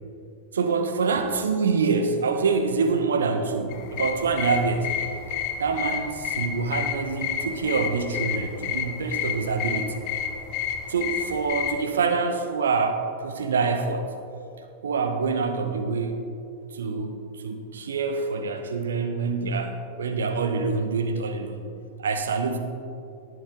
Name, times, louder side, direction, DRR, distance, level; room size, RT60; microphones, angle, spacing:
voice 1, 0.5-4.9 5.6-10.0 10.9-14.1 14.8-16.3 16.7-21.7 22.0-22.6, right 4 dB, 65° right, 7 dB, 1.0 m, -26 dB
sound 1, 3.7-11.8, left 9 dB, 45° left, 1.0 m, -31 dB
18.5 x 8.0 x 3.8 m, 2.6 s
figure-of-eight pair, 90°, 0 cm